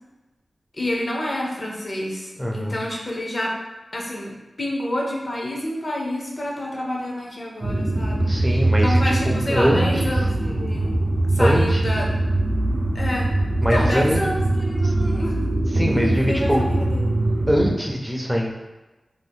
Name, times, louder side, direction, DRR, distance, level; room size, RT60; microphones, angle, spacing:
voice 1, 0.8-3.6 3.9-8.4 8.8-11.0 11.3-12.1 12.9-13.3 13.7-15.5 15.9-17.0, left 1 dB, 45° left, -2 dB, 0.6 m, -28 dB
voice 2, 2.4-2.8 8.2-10.2 11.4-11.8 13.6-14.2 14.8-14.9 15.7-16.7 17.5-18.5, equal, 5° right, 0 dB, 0.5 m, -22 dB
sound 1, 7.6-17.7, right 2 dB, 55° right, 0.6 m, -22 dB
2.7 x 2.1 x 3.4 m, 1.1 s
wide cardioid pair, 70°, 0 cm